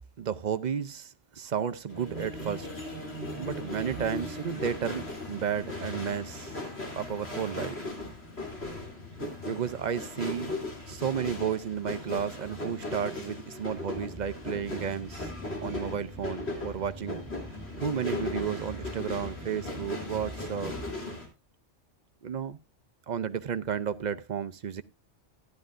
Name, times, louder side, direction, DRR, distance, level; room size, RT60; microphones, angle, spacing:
voice 1, 0.2-2.7 3.4-6.6 6.9-7.8 9.5-10.6 10.9-15.3 15.6-17.2 17.8-20.7 22.2-22.6 23.1-24.8, right 8 dB, 45° right, 0.6 m, -32 dB
sound 1, 1.9-21.3, left 2 dB, 60° left, 3.2 m, -38 dB
sound 2, 13.9-21.0, right 2 dB, 15° right, 1.0 m, -45 dB
13.5 x 10.5 x 2.5 m
omnidirectional pair, 1.2 m